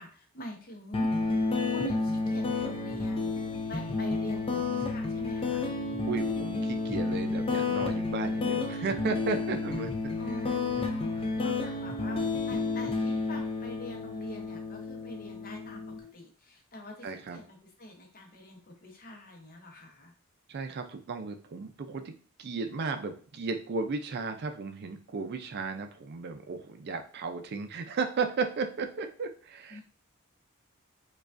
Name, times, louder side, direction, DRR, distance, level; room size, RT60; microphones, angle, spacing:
voice 1, 0.0-5.7 10.2-20.1 29.7-29.8, equal, 40° left, 2 dB, 0.8 m, -44 dB
sound 1, 0.9-16.0, left 3 dB, 25° left, 0.4 m, -31 dB
voice 2, 6.1-10.1 17.0-17.4 20.5-29.8, right 4 dB, 50° right, 7 dB, 0.4 m, -34 dB
4.7 x 2.3 x 2.4 m, 0.41 s
head